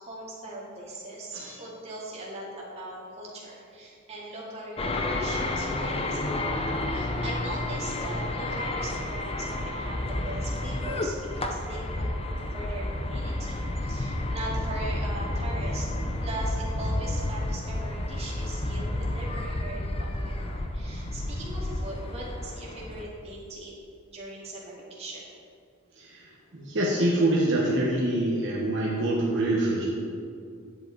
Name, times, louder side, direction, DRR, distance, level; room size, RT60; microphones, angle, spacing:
voice 1, 0.0-12.1 12.5-15.9 16.2-23.7 24.1-25.3, right 1 dB, 30° right, -5 dB, 2.1 m, -40 dB
sound 1, 4.8-23.0, left 1 dB, 25° left, 0.6 m, -31 dB
voice 2, 26.0-26.3 26.5-29.9, right 1 dB, 60° right, -5 dB, 1.4 m, -25 dB
10.5 x 8.0 x 4.1 m, 2.4 s
head